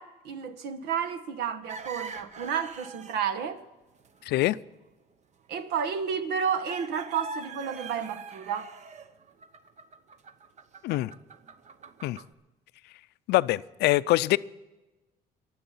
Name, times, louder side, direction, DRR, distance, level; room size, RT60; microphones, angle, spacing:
voice 1, 0.0-3.6 5.5-8.7, right 7 dB, 75° right, 1.4 m, -31 dB
sound 1, 1.6-3.2 3.6-3.7 4.0-4.2 5.5-5.6 6.6-12.3, right 4 dB, 45° right, 1.0 m, -42 dB
voice 2, 4.3-4.6 10.8-11.1 12.0-12.2 13.3-14.4, left 17 dB, 80° left, 0.5 m, -24 dB
23.0 x 7.9 x 5.6 m
cardioid pair, 110°, 17 cm